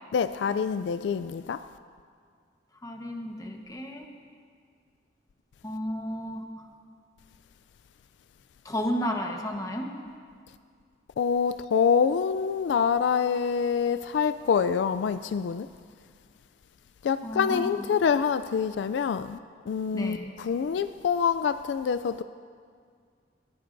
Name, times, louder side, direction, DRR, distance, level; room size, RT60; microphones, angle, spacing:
voice 1, 0.1-1.6 11.2-15.7 17.0-19.4 19.7-22.2, left 6 dB, 75° left, 0.3 m, -26 dB
voice 2, 2.8-4.0 5.6-6.7 8.6-9.9 17.2-17.9 19.9-20.3, equal, 20° left, 1.1 m, -32 dB
20.5 x 15.0 x 2.6 m
head